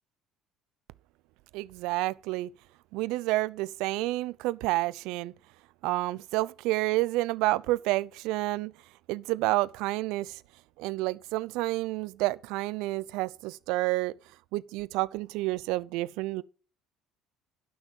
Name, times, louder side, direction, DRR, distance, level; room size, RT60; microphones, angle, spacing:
voice 1, 1.5-2.5 2.9-5.3 5.8-8.7 9.1-10.4 10.8-14.1 14.5-16.4, right 19 dB, 80° right, 0.6 m, -29 dB
11.5 x 6.2 x 7.6 m
cardioid pair, 100°, 0 cm